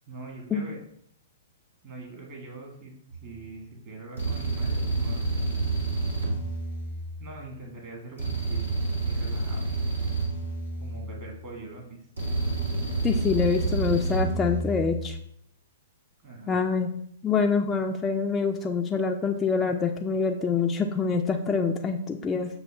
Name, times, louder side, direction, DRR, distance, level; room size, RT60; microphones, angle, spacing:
voice 1, 0.1-0.8 1.8-2.9 3.2-5.2 7.2-8.7 9.0-9.6 10.8-12.0 16.2-16.6, right 3 dB, 40° right, -2 dB, 1.6 m, -42 dB
sound 1, 3.1-3.4 4.2-7.4 8.2-11.4 12.2-15.1, right 3 dB, 80° right, 1.3 m, -29 dB
voice 2, 13.0-15.2 16.5-16.9 17.2-22.5, left 5 dB, 15° left, 2 dB, 0.3 m, -25 dB
6.3 x 2.3 x 3.2 m, 0.68 s
figure-of-eight pair, 115°, 0 cm